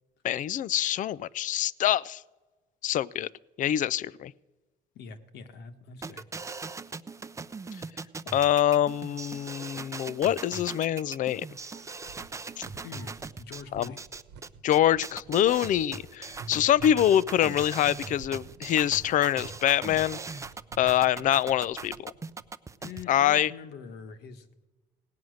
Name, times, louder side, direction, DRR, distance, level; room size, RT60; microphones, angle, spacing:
voice 1, 0.2-2.2 2.8-3.3 3.6-4.3 8.3-11.5 13.7-13.9 14.6-20.2 20.8-22.1 23.1-23.5, left 11 dB, 50° left, 22 dB, 0.4 m, -25 dB
voice 2, 4.9-6.2 11.6-11.9 12.8-14.0 16.5-16.8 22.8-24.6, left 5 dB, 75° left, 8 dB, 1.4 m, -44 dB
sound 1, 6.0-23.0, right 4 dB, 20° right, 0.5 m, -40 dB
sound 2, 11.6-22.5, right 6 dB, 80° right, 1.2 m, -49 dB
17.5 x 9.4 x 6.4 m, 1.2 s
cardioid pair, 110°, 17 cm